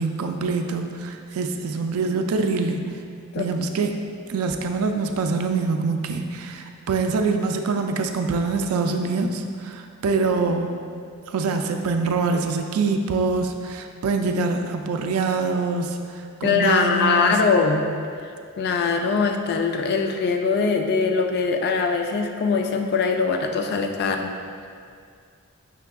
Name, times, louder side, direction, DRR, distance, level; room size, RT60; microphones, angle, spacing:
voice 1, 0.0-2.8 3.4-3.9 4.3-10.8 11.3-16.0 16.4-17.4, right 4 dB, 75° right, 5 dB, 0.3 m, -24 dB
voice 2, 16.4-17.9 18.6-24.3, left 5 dB, 50° left, 4 dB, 0.3 m, -22 dB
5.6 x 2.3 x 3.5 m, 2.2 s
head